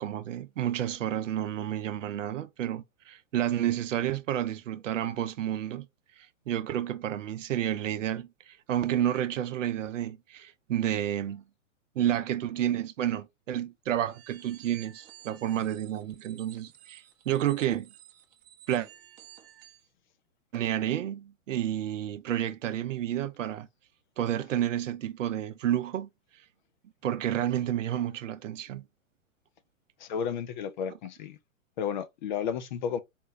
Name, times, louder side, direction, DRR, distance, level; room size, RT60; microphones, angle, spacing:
voice 1, 0.0-5.9 6.5-11.4 12.0-17.9 18.7-18.9 20.5-23.7 24.2-26.1 27.0-28.8, right 11 dB, 65° right, 0.7 m, -30 dB
sound 1, 14.1-19.9, right 12 dB, 25° right, 0.7 m, -54 dB
voice 2, 30.0-31.4 31.8-33.0, left 7 dB, 35° left, 0.5 m, -32 dB
4.4 x 2.2 x 3.5 m
hypercardioid pair, 120°, 41 cm